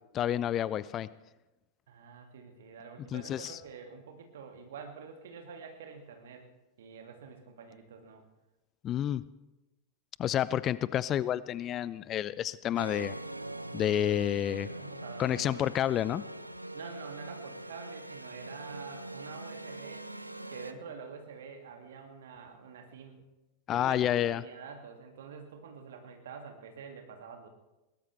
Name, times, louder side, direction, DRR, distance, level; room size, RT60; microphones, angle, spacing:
voice 1, 0.1-1.1 3.1-3.6 8.8-9.2 10.2-13.2 13.7-14.7 15.2-16.2 23.7-24.4, left 11 dB, 30° left, 19 dB, 0.4 m, -29 dB
voice 2, 1.9-6.5 6.8-8.2 14.6-15.7 16.7-20.1 20.5-23.2 23.7-27.5, right 5 dB, 60° right, 4 dB, 2.4 m, -47 dB
sound 1, 12.8-20.7, right 1 dB, 85° right, 0.6 m, -42 dB
21.0 x 18.0 x 3.4 m, 1.0 s
figure-of-eight pair, 90°, 0 cm